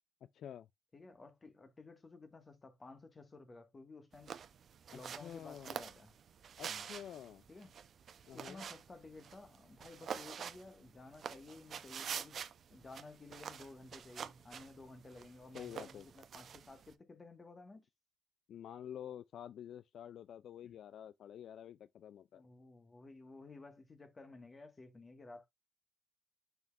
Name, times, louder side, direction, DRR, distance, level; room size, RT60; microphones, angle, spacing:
voice 1, 0.2-0.7 4.9-5.9 6.6-7.4 8.3-8.6 15.5-16.1 18.5-22.4, left 9 dB, 70° left, 0.3 m, -49 dB
voice 2, 0.9-4.4 4.9-6.1 6.7-6.9 7.5-7.7 8.3-12.4 12.7-17.9 20.6-20.7 22.3-25.5, left 3 dB, 30° left, 1.6 m, -54 dB
sound 1, 4.1-16.9, right 7 dB, 55° right, 0.7 m, -48 dB
6.8 x 6.0 x 2.5 m
cardioid pair, 90°, 0 cm